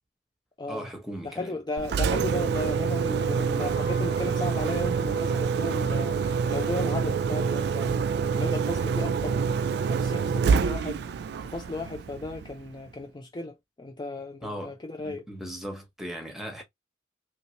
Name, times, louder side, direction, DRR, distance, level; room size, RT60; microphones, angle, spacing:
voice 1, 0.7-1.6 14.4-14.8 15.0-16.6, equal, ahead, 1.1 m, -38 dB
voice 2, 1.2-11.1 11.4-15.2, left 2 dB, 25° left, 0.5 m, -35 dB
Engine, 1.8-12.7, right 6 dB, 65° right, 0.3 m, -27 dB
harmonized singing sigh, 2.9-9.9, left 4 dB, 85° left, 0.8 m, -46 dB
3.1 x 2.8 x 2.9 m
head